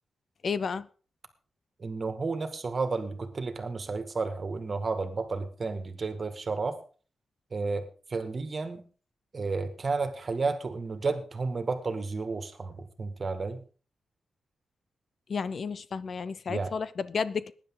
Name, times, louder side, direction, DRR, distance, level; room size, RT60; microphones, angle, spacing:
voice 1, 0.4-0.9 15.3-17.5, left 5 dB, 50° left, 0.6 m, -32 dB
voice 2, 1.8-6.8 7.5-8.8 9.3-13.6 16.5-16.7, right 4 dB, 35° right, 1.9 m, -32 dB
19.0 x 10.0 x 3.8 m
wide cardioid pair, 130°, 0 cm